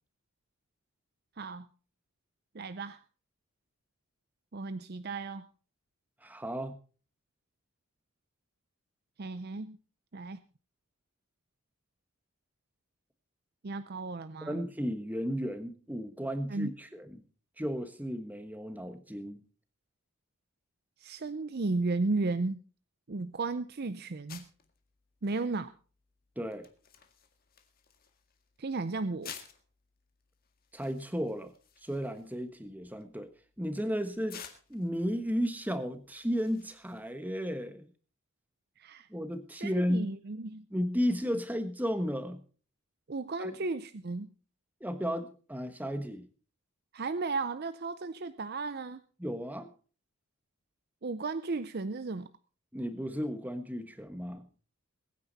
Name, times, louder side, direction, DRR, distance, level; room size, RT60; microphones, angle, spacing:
voice 1, 1.4-1.7 2.5-3.0 4.5-5.5 9.2-9.8 10.1-10.4 13.6-14.6 16.5-16.7 21.0-22.6 23.1-24.4 25.2-25.7 28.6-29.3 38.8-39.1 39.6-40.6 43.1-44.3 46.9-49.0 51.0-52.3, right 3 dB, 45° right, 12 dB, 0.5 m, -34 dB
voice 2, 6.2-6.7 14.5-17.2 17.6-19.4 26.4-26.7 30.7-31.5 31.8-33.3 33.6-37.9 39.1-40.1 40.7-42.4 43.4-43.6 44.8-46.3 49.2-49.7 52.7-54.5, equal, 10° right, 9 dB, 1.3 m, -34 dB
sound 1, 24.3-37.1, left 8 dB, 45° left, 1.9 m, -54 dB
21.5 x 9.6 x 4.1 m, 0.39 s
head